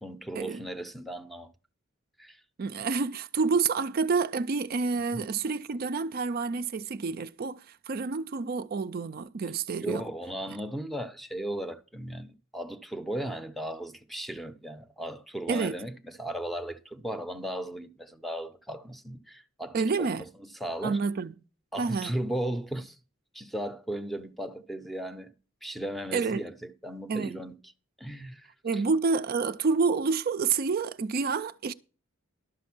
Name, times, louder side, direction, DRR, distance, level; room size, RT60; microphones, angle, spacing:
voice 1, 0.0-1.5 2.2-2.4 5.1-5.2 9.8-21.0 21.7-23.0 23.3-25.3 25.6-27.6 28.0-28.5 28.7-28.8, right 1 dB, ahead, 0.6 m, -36 dB
voice 2, 2.6-10.0 10.5-10.6 15.5-15.8 19.7-20.2 20.8-21.3 21.8-22.1 26.1-26.4 27.1-27.4 28.6-31.7, right 4 dB, 45° right, 0.4 m, -28 dB
12.0 x 6.3 x 6.0 m
head